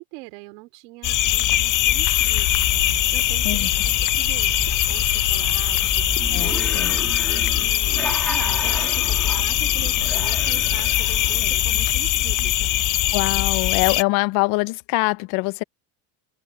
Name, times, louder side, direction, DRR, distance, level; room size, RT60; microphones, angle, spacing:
voice 1, 0.0-6.0 6.4-12.6, right 24 dB, 75° right, 3.5 m, -41 dB
sound 1, 1.0-14.0, left 13 dB, 40° left, 0.9 m, -21 dB
sound 2, 2.4-11.6, right 7 dB, 30° right, 2.4 m, -37 dB
sound 3, 6.2-11.7, equal, ahead, 2.5 m, -35 dB
voice 2, 6.3-6.9 13.1-15.6, left 26 dB, 65° left, 0.9 m, -23 dB
supercardioid pair, 100°, 48 cm